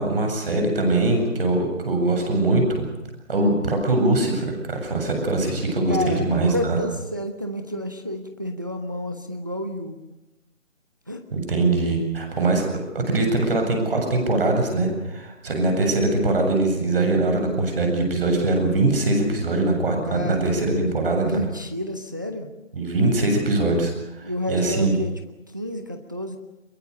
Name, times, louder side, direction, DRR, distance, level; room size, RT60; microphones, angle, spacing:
voice 1, 0.0-2.8 3.3-6.8 11.3-12.7 12.9-21.4 22.7-24.9, right 2 dB, 45° right, 3 dB, 7.6 m, -22 dB
voice 2, 5.9-10.0 11.1-11.2 20.0-20.8 21.1-22.5 24.2-25.1 25.5-26.4, left 1 dB, 15° right, 6 dB, 0.7 m, -30 dB
23.0 x 22.5 x 6.7 m, 0.98 s
hypercardioid pair, 170°, 39 cm